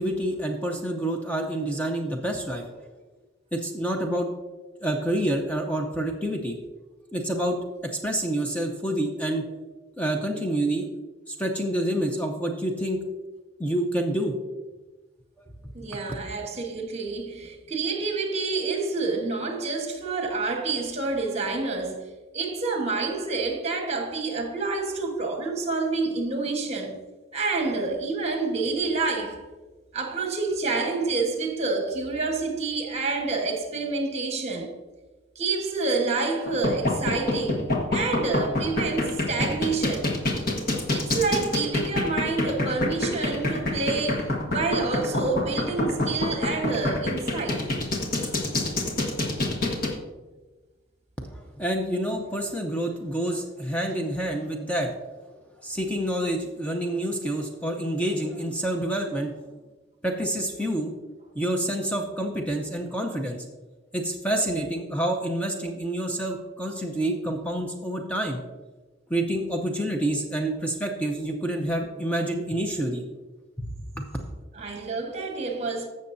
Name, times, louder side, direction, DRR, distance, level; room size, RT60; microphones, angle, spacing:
voice 1, 0.0-2.7 3.5-4.3 4.8-6.6 7.1-9.4 10.0-10.9 11.3-13.0 13.6-14.4 51.2-54.9 55.6-59.3 60.0-60.9 61.3-63.4 63.9-68.4 69.1-73.0 73.6-74.1, right 1 dB, 5° left, 0.7 m, -28 dB
voice 2, 15.7-22.1 22.3-27.0 27.3-29.5 29.9-34.7 35.3-40.2 40.9-47.7 74.5-75.9, right 3 dB, 35° right, 1.4 m, -28 dB
sound 1, 36.5-49.9, left 2 dB, 50° left, 1.5 m, -26 dB
15.5 x 6.5 x 2.7 m
head